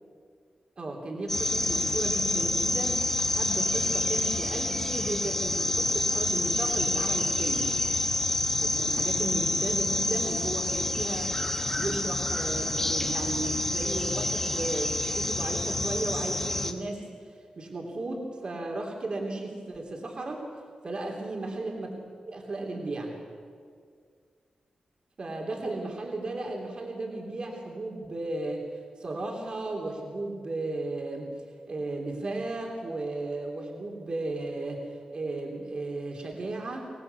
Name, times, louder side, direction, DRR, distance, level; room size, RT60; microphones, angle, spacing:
voice 1, 0.8-7.8 8.6-17.0 17.6-20.4 20.8-22.0 22.2-23.1 25.2-28.6 29.0-31.3 31.7-36.9, right 2 dB, 45° right, 1 dB, 3.3 m, -35 dB
sound 1, 1.3-16.7, left 1 dB, 15° left, 1.5 m, -28 dB
25.0 x 18.0 x 8.4 m, 2.1 s
wide cardioid pair, 135°, 2 cm